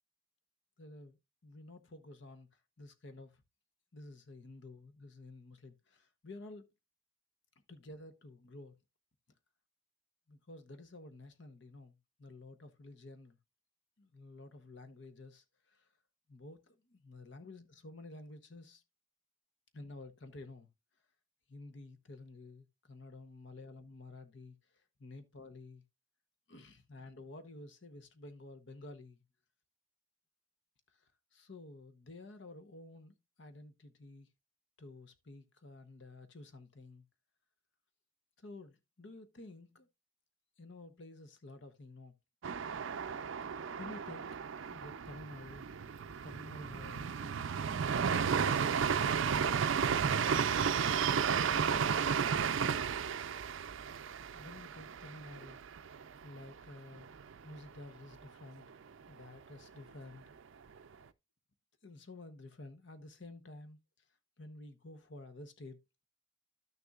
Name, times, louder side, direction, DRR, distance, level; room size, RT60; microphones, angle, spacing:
voice 1, 0.8-1.2 1.4-3.4 3.9-6.7 7.7-8.7 10.3-13.4 14.0-15.9 16.3-18.8 19.7-20.7 21.5-24.5 25.0-25.8 26.5-29.2 31.0-34.3 34.8-37.0 38.4-39.9 40.6-42.1 43.8-44.3 44.7-45.6 46.2-47.5 48.1-49.4 49.8-50.7 51.4-52.8 54.3-55.6 56.2-57.1 57.4-58.7 59.1-60.2 61.8-63.8 64.4-65.8, left 2 dB, 60° left, 0.9 m, -51 dB
sound 1, 42.4-56.2 56.5-56.6 56.9-57.5, right 7 dB, 70° right, 0.4 m, -33 dB
12.0 x 6.7 x 2.4 m
head